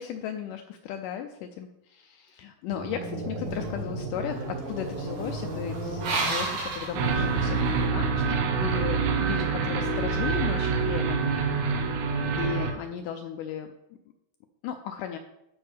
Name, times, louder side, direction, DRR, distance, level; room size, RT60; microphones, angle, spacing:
voice 1, 0.0-11.3 12.3-13.7 14.6-15.2, left 9 dB, 85° left, 6 dB, 1.8 m, -35 dB
sound 1, 2.7-7.0, right 1 dB, 40° right, 1.6 m, -35 dB
sound 2, 3.5-7.8, right 3 dB, 65° right, 3.2 m, -34 dB
sound 3, 6.9-12.7, right 5 dB, 90° right, 2.7 m, -26 dB
13.0 x 5.2 x 3.4 m, 0.87 s
omnidirectional pair, 4.2 m